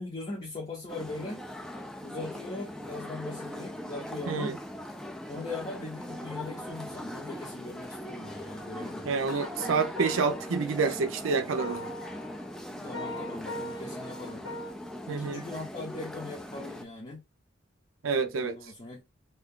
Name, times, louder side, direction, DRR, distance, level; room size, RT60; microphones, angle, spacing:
voice 1, 0.0-1.4 2.0-4.5 5.3-9.1 12.7-14.5 15.1-17.2 18.3-19.0, left 2 dB, 30° left, 0.7 m, -40 dB
sound 1, 0.9-16.9, left 1 dB, 5° left, 0.3 m, -40 dB
voice 2, 4.3-4.6 9.0-11.9 15.1-15.4 18.0-18.6, right 4 dB, 85° right, 0.5 m, -28 dB
sound 2, 8.2-14.7, left 1 dB, 75° left, 1.5 m, -41 dB
2.8 x 2.3 x 3.6 m
head